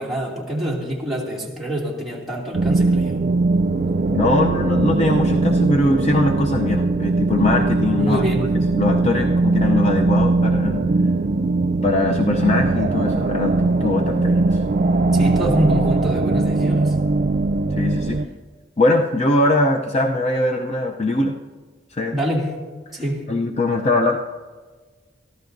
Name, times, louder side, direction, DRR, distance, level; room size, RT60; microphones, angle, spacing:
voice 1, 0.0-3.2 8.0-8.5 15.1-16.9 22.1-22.5 22.9-23.3, right 1 dB, ahead, -5 dB, 2.4 m, -25 dB
sound 1, 2.5-18.3, right 3 dB, 40° right, 0.4 m, -20 dB
voice 2, 4.1-8.2 8.8-10.9 11.8-14.6 17.7-18.2 18.8-21.4 21.9-22.2 22.9-23.0 23.3-24.2, left 2 dB, 30° left, 3 dB, 0.6 m, -21 dB
23.0 x 14.0 x 2.6 m, 1.4 s
head